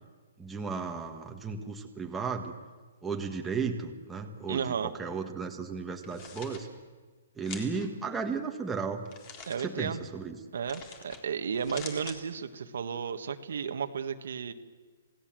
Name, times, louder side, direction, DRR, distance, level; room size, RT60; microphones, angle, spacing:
voice 1, 0.4-2.5 3.0-6.7 7.4-9.0 9.6-10.4, right 5 dB, 10° right, 2 dB, 1.7 m, -34 dB
voice 2, 4.5-4.9 9.5-10.1 10.5-14.5, right 6 dB, 70° right, 8 dB, 1.6 m, -33 dB
sound 1, 5.9-6.6 7.4-7.9 9.0-9.7 10.7-11.2 11.5-12.2, left 5 dB, 30° left, 3.7 m, -45 dB
28.0 x 17.5 x 7.7 m, 1.4 s
hypercardioid pair, 155°, 0 cm